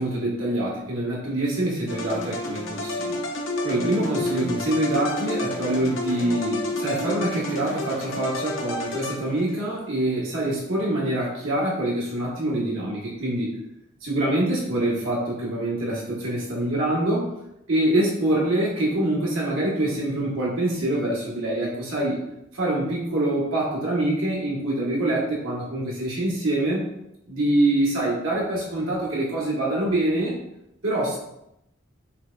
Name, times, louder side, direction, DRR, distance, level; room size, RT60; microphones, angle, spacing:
voice 1, 0.0-3.3 3.6-13.6 14.0-17.3 17.7-22.2 22.5-26.8 27.3-30.4 30.8-31.2, right 1 dB, 85° right, -5 dB, 1.3 m, -25 dB
sound 1, 1.9-9.6, left 1 dB, 70° left, 0.6 m, -30 dB
5.7 x 2.4 x 2.3 m, 0.84 s
head